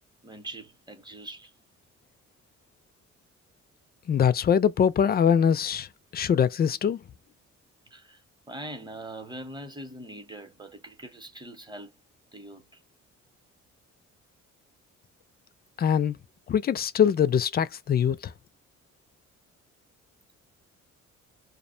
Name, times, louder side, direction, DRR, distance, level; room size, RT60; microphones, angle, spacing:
voice 1, 0.2-1.5 7.9-8.2 8.5-11.9 12.3-12.8, right 1 dB, 15° right, 0.8 m, -42 dB
voice 2, 4.1-5.9 6.1-7.0 15.8-16.2 16.5-18.3, left 8 dB, 35° left, 0.4 m, -23 dB
2.5 x 2.1 x 2.6 m
cardioid pair, 90°, 30 cm